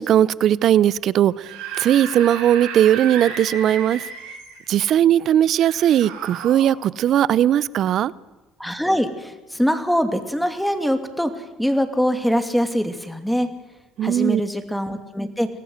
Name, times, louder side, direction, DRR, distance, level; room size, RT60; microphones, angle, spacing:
voice 1, 0.0-1.5 1.8-4.1 4.7-8.1 14.0-14.4, right 11 dB, 60° right, 21 dB, 0.7 m, -18 dB
Screaming / Screech, 1.3-4.6 5.6-6.7, right 6 dB, 80° right, 6.6 m, -33 dB
voice 2, 8.6-13.5 14.0-15.5, equal, ahead, 8 dB, 2.7 m, -23 dB
24.0 x 17.5 x 8.0 m, 1.1 s
hypercardioid pair, 65°, 0 cm